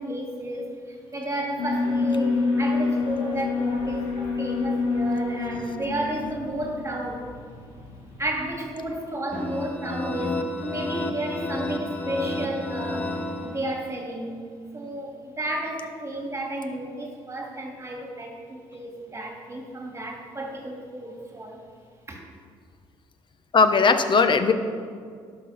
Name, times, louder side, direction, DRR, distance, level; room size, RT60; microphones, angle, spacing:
voice 1, 0.0-7.3 8.2-13.1 13.4-14.4 14.7-21.6 22.1-22.2, right 1 dB, 25° right, 1 dB, 2.3 m, -32 dB
Alarm, 1.6-8.7, left 4 dB, 85° left, 2.1 m, -27 dB
sound 1, 9.3-14.1, left 1 dB, 15° left, 1.1 m, -31 dB
voice 2, 23.5-24.5, left 4 dB, 45° left, 10 dB, 0.9 m, -18 dB
11.5 x 6.1 x 5.8 m, 2.1 s
supercardioid pair, 70°, 11 cm